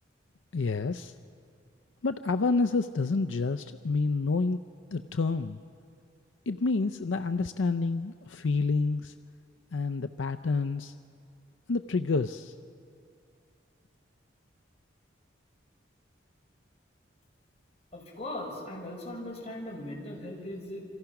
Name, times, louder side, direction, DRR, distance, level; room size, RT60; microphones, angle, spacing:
voice 1, 0.5-1.1 2.0-4.6 4.9-5.6 6.5-9.1 9.7-10.9 11.7-12.5, left 3 dB, 80° left, 9 dB, 0.5 m, -28 dB
voice 2, 17.9-20.9, left 1 dB, 35° left, -2 dB, 5.8 m, -39 dB
27.5 x 26.5 x 5.9 m, 2.4 s
head